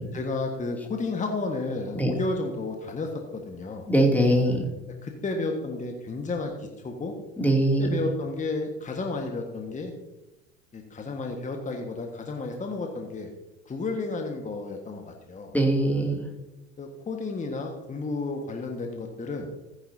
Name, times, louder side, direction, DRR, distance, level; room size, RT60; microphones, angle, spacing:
voice 1, 0.1-3.9 5.0-7.1 7.8-9.9 10.7-13.3 13.6-15.5 16.8-19.5, left 3 dB, 20° left, 3 dB, 1.5 m, -32 dB
voice 2, 3.9-4.7 7.4-8.0 15.5-16.3, right 1 dB, 5° left, 1 dB, 2.6 m, -22 dB
14.5 x 9.5 x 2.7 m, 1.0 s
figure-of-eight pair, 70°, 37 cm